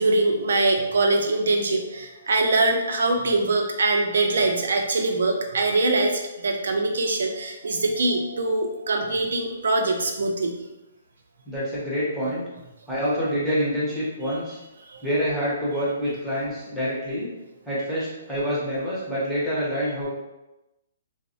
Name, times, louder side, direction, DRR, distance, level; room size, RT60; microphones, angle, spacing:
voice 1, 0.0-10.5 14.9-15.0, right 2 dB, 70° right, 4 dB, 0.4 m, -23 dB
voice 2, 11.4-12.5 12.9-14.6 15.0-17.3 17.6-20.1, equal, ahead, -11 dB, 0.5 m, -26 dB
3.0 x 2.0 x 2.6 m, 1.0 s
hypercardioid pair, 180°, 0 cm